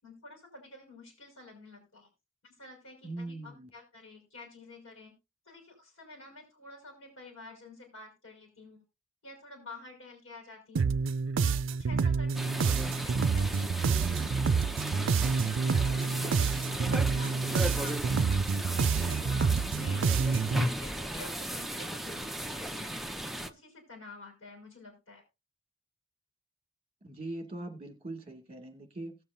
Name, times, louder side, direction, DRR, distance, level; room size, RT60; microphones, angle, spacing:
voice 1, 0.0-2.1 2.4-5.2 5.4-8.8 9.2-11.0 11.4-15.4 15.8-22.9 23.2-25.2, left 2 dB, 75° left, 5.2 m, -50 dB
voice 2, 3.0-3.7 27.0-29.2, right 2 dB, 30° right, 2.3 m, -41 dB
sound 1, 10.8-20.7, right 5 dB, 70° right, 0.4 m, -28 dB
sound 2, 12.3-23.5, equal, ahead, 0.6 m, -36 dB
18.0 x 7.4 x 2.6 m
head